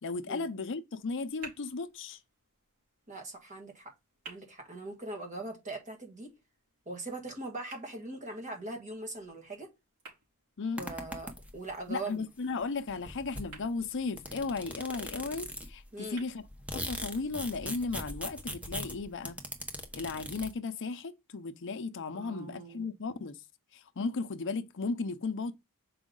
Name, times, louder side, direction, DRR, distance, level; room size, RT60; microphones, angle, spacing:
voice 1, 0.0-2.2 10.6-10.9 11.9-16.4 16.7-19.4 19.9-23.4 23.7-25.5, left 4 dB, 55° left, 0.7 m, -35 dB
sound 1, 1.0-17.0, right 3 dB, 70° right, 4.2 m, -57 dB
voice 2, 3.1-3.9 4.2-6.3 6.8-9.7 10.8-12.2 15.9-16.2 22.1-22.9, right 2 dB, 35° right, 1.8 m, -41 dB
sound 2, 10.8-11.7 12.6-12.7 12.9-15.8 16.3-20.5, equal, 5° right, 1.0 m, -40 dB
6.1 x 5.0 x 3.8 m
head